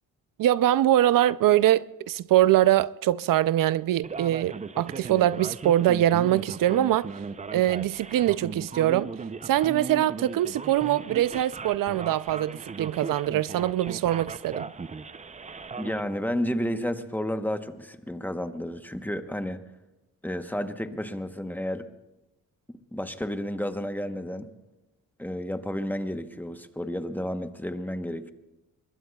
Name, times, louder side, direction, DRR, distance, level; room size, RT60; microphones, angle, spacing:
voice 1, 0.4-7.1 7.5-9.1 9.4-14.7, right 13 dB, 75° right, 0.5 m, -23 dB
Male speech man speaking, 4.0-16.0, right 4 dB, 20° right, 0.5 m, -38 dB
voice 2, 15.8-19.6 20.2-21.9 22.7-24.5 25.2-28.3, equal, 5° left, 0.9 m, -31 dB
24.5 x 21.0 x 2.3 m
cardioid pair, 90°, 34 cm